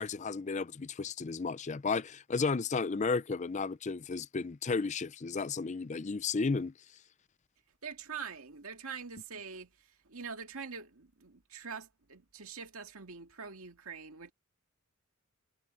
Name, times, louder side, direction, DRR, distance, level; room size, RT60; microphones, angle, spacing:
voice 1, 0.0-6.7, left 4 dB, 35° left, 0.5 m, -33 dB
voice 2, 7.8-14.3, right 6 dB, 80° right, 2.1 m, -44 dB
head